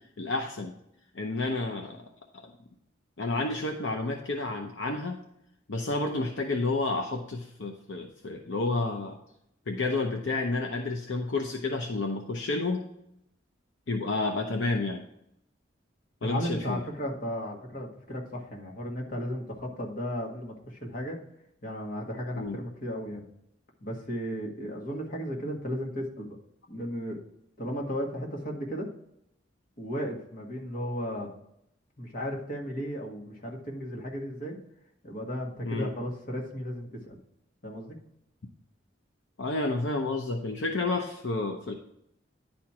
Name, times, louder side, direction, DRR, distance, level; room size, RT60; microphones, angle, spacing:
voice 1, 0.2-0.7 1.1-2.0 2.3-2.5 3.2-5.2 5.7-9.2 9.7-12.8 13.9-15.0 16.2-16.8 22.4-22.6 35.6-35.9 39.4-41.7, left 2 dB, 70° left, 3 dB, 0.8 m, -30 dB
voice 2, 16.2-21.2 21.6-23.2 23.8-26.4 26.7-27.2 27.6-28.9 29.8-31.3 32.0-34.6 35.0-37.2 37.6-38.0, equal, 45° left, 0 dB, 1.8 m, -35 dB
10.5 x 4.4 x 4.8 m, 0.77 s
head